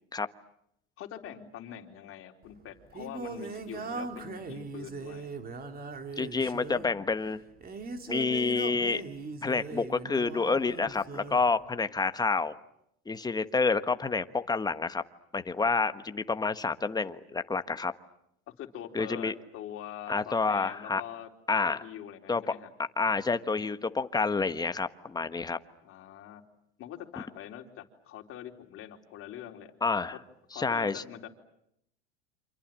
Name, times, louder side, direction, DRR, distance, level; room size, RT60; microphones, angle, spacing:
voice 1, 1.0-5.3 18.6-21.3 21.6-22.7 25.8-26.4 26.8-29.7 30.1-30.2 30.5-31.3, left 10 dB, 40° left, 3 dB, 4.1 m, -44 dB
Singing, 2.4-11.5, right 4 dB, 25° right, 3.0 m, -40 dB
voice 2, 6.2-7.4 8.1-9.0 9.4-12.6 13.1-15.0 15.3-17.9 18.9-19.3 20.1-21.0 21.5-21.8 22.3-22.5 23.0-25.6 29.8-30.2 30.5-31.0, left 4 dB, 10° left, 11 dB, 1.3 m, -28 dB
28.0 x 27.0 x 7.6 m, 0.76 s
hypercardioid pair, 110°, 34 cm